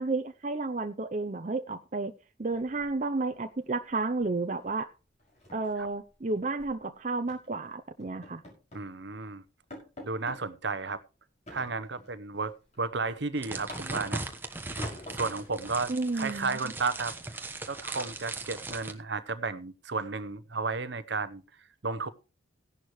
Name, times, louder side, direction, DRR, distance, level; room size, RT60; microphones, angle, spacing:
voice 1, 0.0-2.1 2.4-4.9 5.5-8.4 15.9-16.7, right 3 dB, 40° right, 0.6 m, -32 dB
sound 1, 2.5-3.4 3.6-3.9 4.2-4.4 4.7-4.8 5.2-6.8 7.3-7.5 8.0-8.9 9.3-9.4 9.7-10.4 11.5-12.2 12.6-14.2 14.8-15.5, left 1 dB, 35° left, 6.0 m, -47 dB
voice 2, 8.7-9.4 10.0-11.0 11.5-14.3 15.1-21.4 21.8-22.1, right 4 dB, 60° right, 0.9 m, -33 dB
sound 2, 13.4-18.9, right 2 dB, 10° right, 1.1 m, -39 dB
16.5 x 11.0 x 3.1 m
head